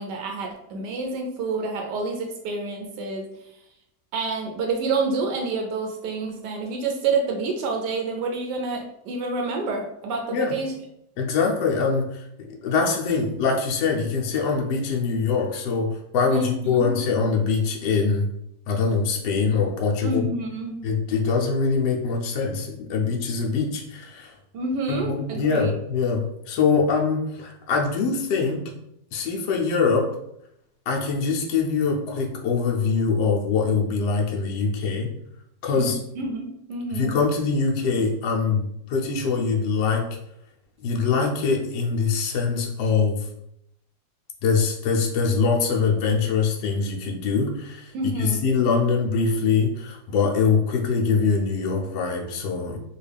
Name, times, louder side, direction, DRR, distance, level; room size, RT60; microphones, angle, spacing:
voice 1, 0.0-3.3 4.1-10.7 16.3-16.9 20.0-20.8 24.5-25.7 35.7-35.9 36.2-37.2 47.9-48.4, right 3 dB, 75° right, 2 dB, 1.1 m, -28 dB
voice 2, 11.2-18.3 18.7-20.3 20.8-24.3 24.9-28.7 29.1-30.1 30.9-35.1 35.6-36.0 36.9-40.1 40.8-43.3 44.4-47.9 48.2-52.8, left 5 dB, 80° left, -1 dB, 1.3 m, -23 dB
3.5 x 2.3 x 3.3 m, 0.78 s
omnidirectional pair, 1.9 m